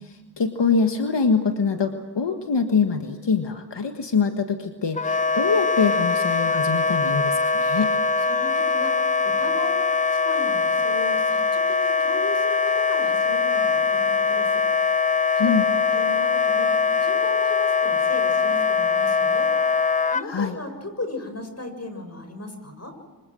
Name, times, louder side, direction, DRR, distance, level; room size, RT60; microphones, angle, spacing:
voice 1, 0.0-7.9 15.4-15.6 20.3-20.6, left 5 dB, 75° left, 6 dB, 1.6 m, -24 dB
Wind instrument woodwind instrument, 5.0-20.2, left 5 dB, 20° left, 0.7 m, -22 dB
voice 2, 8.2-8.9 9.2-9.9 10.2-14.5 15.4-16.7 17.0-19.5 20.1-22.9, left 2 dB, 35° left, 6 dB, 6.9 m, -36 dB
26.0 x 25.5 x 6.4 m, 1.4 s
wide cardioid pair, 60°, 43 cm